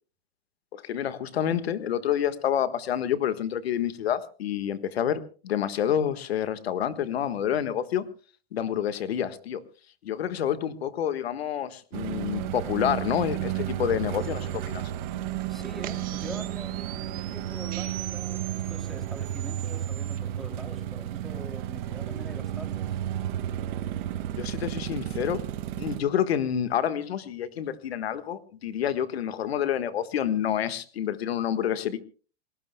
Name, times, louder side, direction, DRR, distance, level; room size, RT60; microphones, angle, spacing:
voice 1, 0.7-8.1 8.5-9.6 10.0-14.8 24.4-25.4 25.8-32.0, left 9 dB, 90° left, 11 dB, 1.5 m, -28 dB
sound 1, 11.9-26.0, right 12 dB, 55° right, 1.9 m, -32 dB
sound 2, 14.2-20.2, right 14 dB, 30° right, 1.2 m, -43 dB
voice 2, 15.5-23.0, right 1 dB, ahead, 5 dB, 2.6 m, -43 dB
28.0 x 19.0 x 2.2 m, 0.39 s
supercardioid pair, 145°, 30 cm